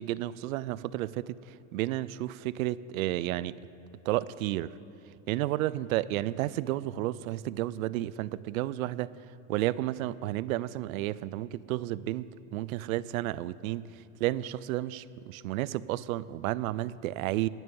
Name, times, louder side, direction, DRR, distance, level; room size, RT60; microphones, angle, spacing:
voice 1, 0.0-3.5 4.1-4.7 5.3-9.1 9.5-17.5, right 15 dB, 80° right, 18 dB, 0.6 m, -32 dB
21.5 x 9.3 x 5.5 m, 2.7 s
supercardioid pair, 120°, 41 cm